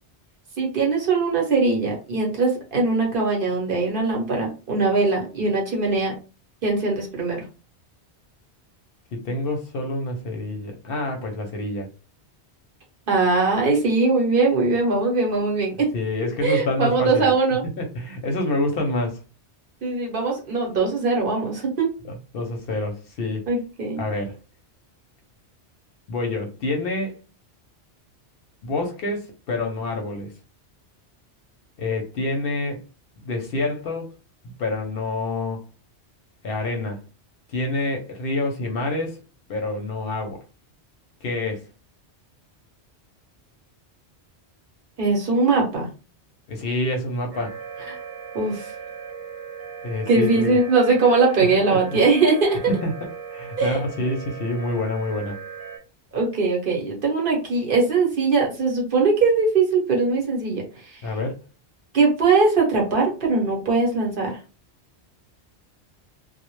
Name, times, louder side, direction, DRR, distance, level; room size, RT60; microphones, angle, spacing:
voice 1, 0.6-6.1 6.6-7.4 13.1-15.9 16.4-17.6 18.9-19.0 19.8-21.9 23.5-24.0 45.0-45.9 47.9-48.0 48.3-48.7 50.1-52.6 53.6-53.8 56.1-61.0 61.9-64.4, right 3 dB, 55° right, -1 dB, 0.8 m, -21 dB
voice 2, 9.1-11.9 15.9-17.3 17.8-19.2 22.3-23.4 24.0-24.3 26.1-27.1 28.6-30.3 31.8-32.8 33.3-34.1 34.6-35.6 36.4-37.0 37.5-39.2 39.5-40.4 41.2-41.6 46.5-47.6 49.8-50.6 51.7-52.0 52.7-52.9 53.3-55.4 61.0-61.3, left 2 dB, 65° left, 3 dB, 0.7 m, -27 dB
sound 1, 47.3-55.8, right 6 dB, 35° right, 0.4 m, -38 dB
2.0 x 2.0 x 2.9 m, 0.33 s
omnidirectional pair, 1.2 m